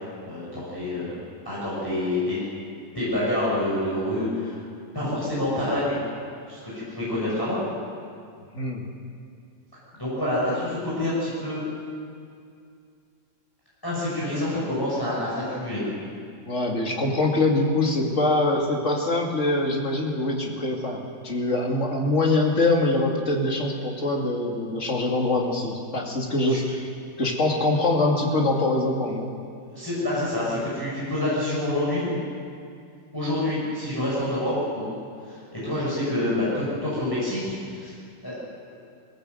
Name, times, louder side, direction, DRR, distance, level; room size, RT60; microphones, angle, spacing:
voice 1, 0.0-2.5 2.9-4.5 4.9-6.0 6.5-7.6 9.9-11.6 13.8-15.8 26.5-26.6 29.7-32.2 33.1-34.9 35.3-37.9 38.2-38.3, left 1 dB, 10° left, -8 dB, 6.2 m, -27 dB
voice 2, 8.5-8.8 16.4-26.9 27.2-29.3, left 2 dB, 45° left, 0 dB, 2.8 m, -24 dB
22.0 x 17.5 x 8.0 m, 2.3 s
omnidirectional pair, 1.9 m